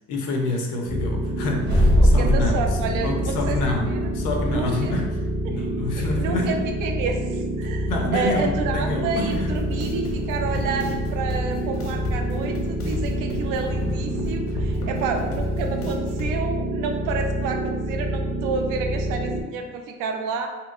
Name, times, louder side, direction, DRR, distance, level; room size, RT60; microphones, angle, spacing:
voice 1, 0.1-2.8 3.0-5.2 5.5-6.5 7.9-9.5, left 2 dB, 85° left, 2 dB, 0.6 m, -27 dB
sound 1, 0.9-19.4, right 1 dB, 15° right, 0.5 m, -27 dB
sound 2, 1.6-5.9, equal, 35° right, 0.9 m, -23 dB
voice 2, 1.9-3.7 4.4-5.0 5.4-5.7 5.9-20.5, right 4 dB, 90° right, 4 dB, 0.5 m, -30 dB
sound 3, 9.3-16.3, left 2 dB, 45° left, 0.4 m, -34 dB
2.8 x 2.7 x 2.4 m, 1.2 s
cardioid pair, 165°, 31 cm